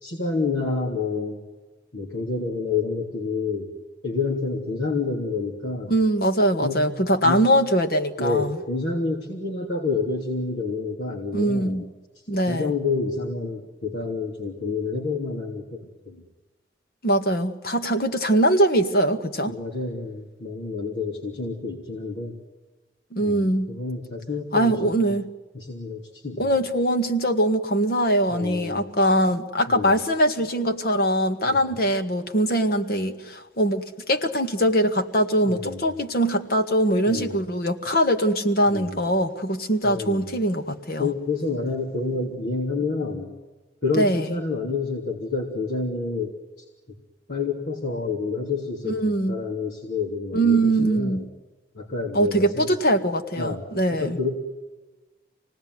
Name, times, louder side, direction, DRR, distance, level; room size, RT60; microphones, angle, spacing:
voice 1, 0.0-1.4 1.9-3.7 4.0-5.9 6.6-6.9 7.2-7.5 8.2-11.9 12.5-16.2 19.5-22.4 23.2-25.1 25.5-26.5 28.3-28.8 29.7-29.9 31.4-31.8 35.4-35.8 37.1-37.4 38.7-39.0 39.8-40.3 41.0-43.3 43.8-46.4 47.3-49.0 49.3-51.3 51.7-52.8 53.4-53.6 53.9-54.4, left 4 dB, 70° left, -2 dB, 3.3 m, -28 dB
voice 2, 5.9-8.6 11.3-11.8 12.3-12.7 17.0-19.5 23.1-23.7 24.5-25.3 26.4-41.1 44.0-44.3 48.8-49.3 50.3-51.2 52.1-54.2, right 1 dB, 55° left, 7 dB, 1.9 m, -22 dB
27.5 x 19.0 x 9.5 m, 1.3 s
head